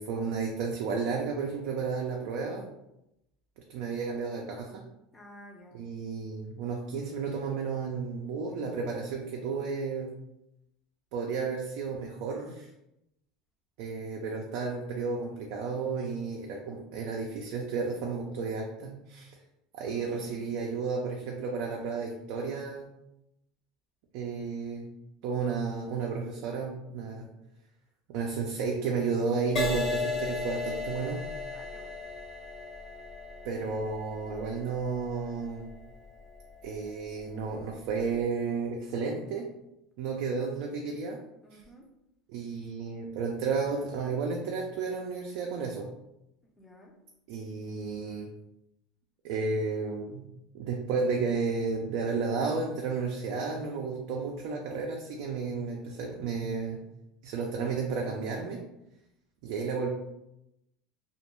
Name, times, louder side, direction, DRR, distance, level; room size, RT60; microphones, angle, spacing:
voice 1, 0.0-2.7 3.7-4.8 5.7-10.1 11.1-12.7 13.8-19.3 19.7-22.9 24.1-24.9 25.2-27.3 28.1-31.2 33.4-35.7 36.6-39.5 40.0-41.2 41.5-41.6 42.3-45.9 47.3-48.3 49.2-50.3 50.5-56.8 57.2-58.6 59.4-59.9, right 4 dB, 65° right, 0 dB, 0.4 m, -32 dB
voice 2, 5.1-5.8 19.8-20.6 31.5-32.1 41.4-41.9 46.6-47.0, equal, 15° left, 0 dB, 0.5 m, -53 dB
Crash cymbal, 29.6-37.2 37.9-38.2, left 3 dB, 35° left, 0.9 m, -36 dB
2.4 x 2.1 x 3.0 m, 0.85 s
supercardioid pair, 125°, 0 cm